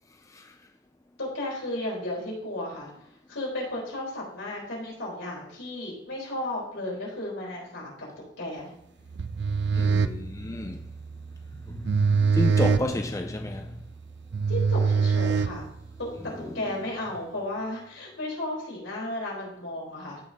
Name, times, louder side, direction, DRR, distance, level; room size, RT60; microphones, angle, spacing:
voice 1, 1.2-2.9 3.3-7.9 8.4-8.7 14.5-15.7 16.0-20.2, left 1 dB, 80° left, 4.1 m, -34 dB
sound 1, 9.1-16.1, right 5 dB, 60° right, 0.4 m, -25 dB
voice 2, 9.7-10.9 11.7-13.7 16.2-16.8, left 2 dB, 15° left, 0.3 m, -32 dB
14.5 x 5.8 x 2.8 m
head